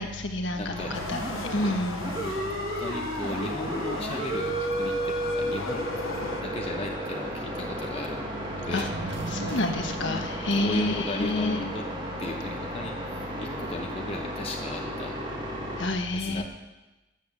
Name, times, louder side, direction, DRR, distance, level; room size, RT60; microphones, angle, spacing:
voice 1, 0.0-2.1 8.7-8.9 9.3-11.6 15.8-16.4, left 2 dB, 60° left, 5 dB, 1.4 m, -29 dB
voice 2, 0.5-1.0 2.2-2.4 2.8-5.9 6.4-8.9 10.0-11.9 12.2-15.2 16.1-16.4, left 1 dB, 30° left, 2 dB, 0.9 m, -36 dB
sound 1, 0.7-15.9, right 1 dB, 25° right, 2.0 m, -33 dB
sound 2, 0.9-6.4, left 4 dB, 85° left, 0.8 m, -38 dB
sound 3, 8.5-11.3 11.6-11.7, right 3 dB, 55° right, 0.6 m, -38 dB
13.5 x 8.0 x 6.9 m, 1.1 s
head